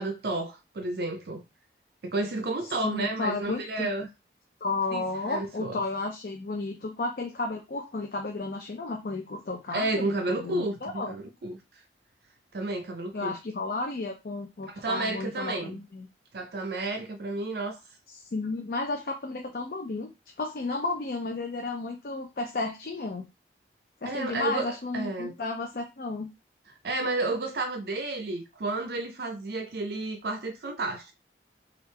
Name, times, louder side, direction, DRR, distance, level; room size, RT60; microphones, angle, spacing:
voice 1, 0.0-1.4 2.0-4.1 4.9-5.8 9.7-11.6 12.5-13.3 14.6-15.8 16.3-17.8 24.1-25.3 26.8-31.1, right 2 dB, 60° right, 0.5 m, -31 dB
voice 2, 2.6-3.9 4.6-11.1 13.1-16.1 18.1-20.1 20.4-23.3 24.0-26.3, left 3 dB, 55° left, 0.4 m, -33 dB
3.3 x 2.4 x 3.2 m
head